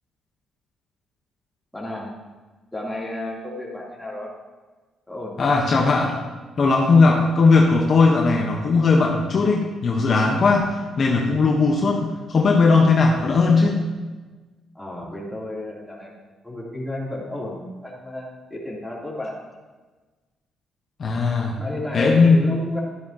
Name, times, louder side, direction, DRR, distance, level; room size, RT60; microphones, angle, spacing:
voice 1, 1.7-2.2 2.7-4.3 5.1-5.5 14.7-19.4 21.6-22.8, left 2 dB, 5° left, -6 dB, 3.3 m, -32 dB
voice 2, 5.4-6.2 6.6-13.8 21.0-21.5 21.9-22.4, left 4 dB, 50° left, 0 dB, 1.2 m, -18 dB
12.0 x 10.5 x 3.0 m, 1.3 s
cardioid pair, 90°, 0 cm